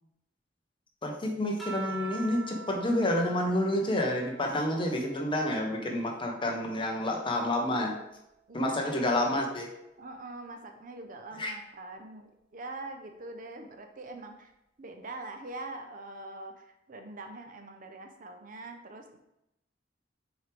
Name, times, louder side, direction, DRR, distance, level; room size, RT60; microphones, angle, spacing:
voice 1, 1.0-8.0 8.5-9.7 11.4-11.5, left 1 dB, 30° left, 1 dB, 1.0 m, -29 dB
sound 1, 1.6-6.4 6.8-8.6 9.8-10.3, right 4 dB, ahead, 1.2 m, -46 dB
voice 2, 8.5-9.4 10.0-14.5 14.8-19.2, right 2 dB, 50° right, 5 dB, 0.7 m, -43 dB
6.5 x 4.5 x 3.4 m, 0.86 s
head